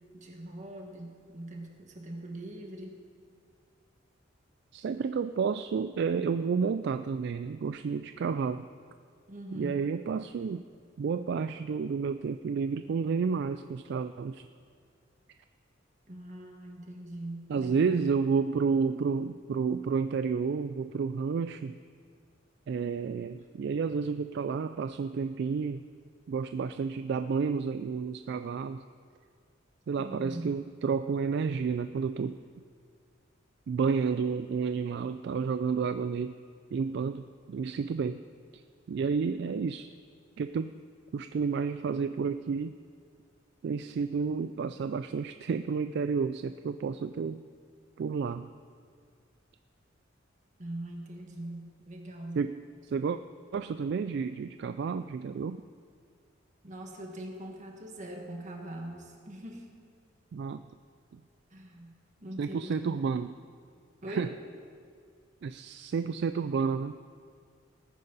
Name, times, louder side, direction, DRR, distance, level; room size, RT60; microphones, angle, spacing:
voice 1, 0.1-2.9 9.3-9.8 16.1-18.1 30.0-30.6 50.6-52.5 56.6-59.7 61.5-61.9 62.2-63.0 64.0-64.3, right 1 dB, 40° right, 1 dB, 1.8 m, -42 dB
voice 2, 4.7-8.7 9.5-10.6 11.0-14.5 17.5-21.8 22.7-25.8 26.3-28.8 29.9-32.4 33.7-36.4 36.7-38.2 38.5-38.6 38.9-39.9 40.4-40.7 41.1-42.8 43.6-47.4 48.0-48.5 52.4-52.6 52.9-53.2 53.5-55.6 60.3-60.6 61.1-61.2 62.4-63.3 64.1-64.3 65.4-67.0, right 5 dB, 60° right, 11 dB, 0.3 m, -31 dB
18.5 x 9.5 x 4.0 m, 2.1 s
head